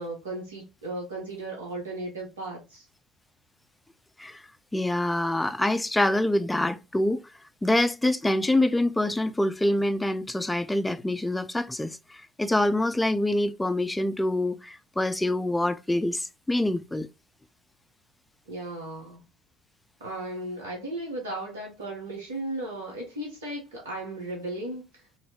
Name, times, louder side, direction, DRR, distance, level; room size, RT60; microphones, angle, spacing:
voice 1, 0.0-2.9 18.5-19.2 20.0-25.0, right 2 dB, 85° right, 0.9 m, -36 dB
voice 2, 4.7-7.3 7.6-17.1, left 1 dB, 10° left, 0.4 m, -25 dB
3.1 x 2.7 x 2.8 m
hypercardioid pair, 60°, 0 cm